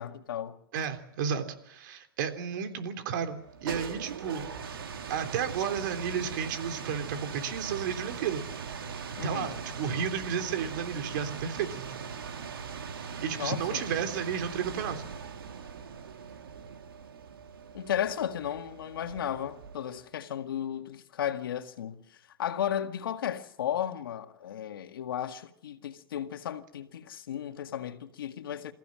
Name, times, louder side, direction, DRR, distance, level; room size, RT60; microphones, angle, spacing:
voice 1, 0.0-0.6 9.2-9.6 13.3-13.8 17.7-28.7, left 10 dB, 75° left, 2.0 m, -34 dB
voice 2, 0.7-4.5 5.1-8.4 9.2-12.1 13.2-15.0, right 7 dB, 60° right, 3.5 m, -32 dB
sound 1, 3.4-20.1, right 6 dB, 80° right, 2.8 m, -40 dB
28.0 x 15.5 x 7.7 m
hypercardioid pair, 125°, 12 cm